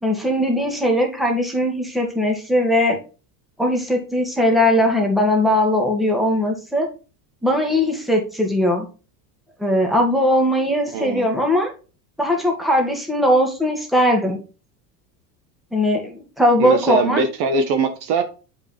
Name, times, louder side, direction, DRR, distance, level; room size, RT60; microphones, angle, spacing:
voice 1, 0.0-3.0 3.6-6.9 7.4-8.9 9.6-11.7 12.2-14.4 15.7-17.2, left 1 dB, ahead, 2.2 m, -19 dB
voice 2, 10.9-11.3 16.6-18.2, right 4 dB, 55° right, 1.5 m, -21 dB
8.1 x 5.3 x 3.4 m
supercardioid pair, 120°, 47 cm